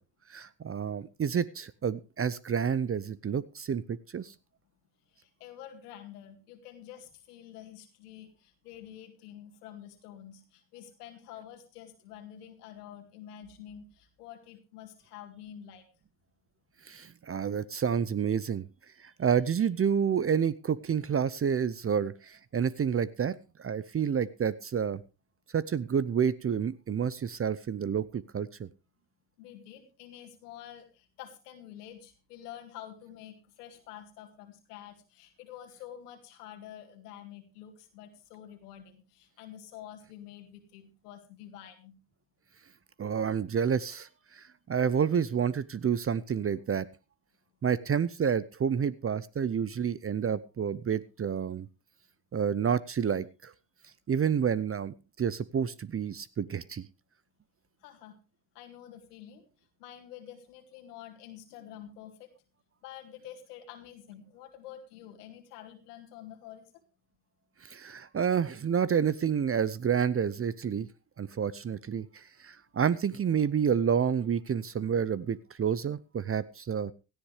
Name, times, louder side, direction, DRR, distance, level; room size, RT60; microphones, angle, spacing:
voice 1, 0.3-4.3 16.9-18.6 19.0-25.0 25.5-28.7 43.0-46.9 47.6-51.7 52.3-53.5 54.1-56.9 67.6-70.9 71.2-76.9, right 7 dB, 30° right, 19 dB, 0.7 m, -29 dB
voice 2, 5.1-15.8 29.4-42.0 57.8-58.2 58.5-59.5 59.8-62.3 62.8-66.8, left 10 dB, 90° left, 5 dB, 2.2 m, -48 dB
17.0 x 13.5 x 3.2 m, 0.30 s
hypercardioid pair, 55°, 45 cm